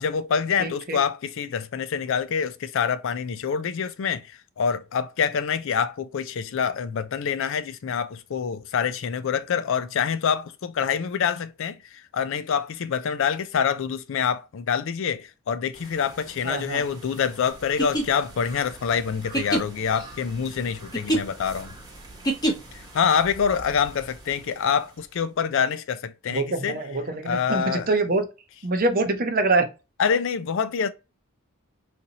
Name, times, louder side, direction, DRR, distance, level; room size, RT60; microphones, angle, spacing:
voice 1, 0.0-4.3 4.6-11.8 12.1-21.7 22.9-26.8 27.3-27.9 30.0-30.9, left 7 dB, 65° left, 0.4 m, -26 dB
voice 2, 0.6-1.0 16.4-16.8 26.3-28.3 28.6-29.7, right 2 dB, 45° right, 0.6 m, -25 dB
sound 1, 15.7-25.3, right 2 dB, 20° right, 1.0 m, -47 dB
sound 2, 17.6-22.9, right 1 dB, 20° left, 0.8 m, -27 dB
3.9 x 2.6 x 2.8 m
head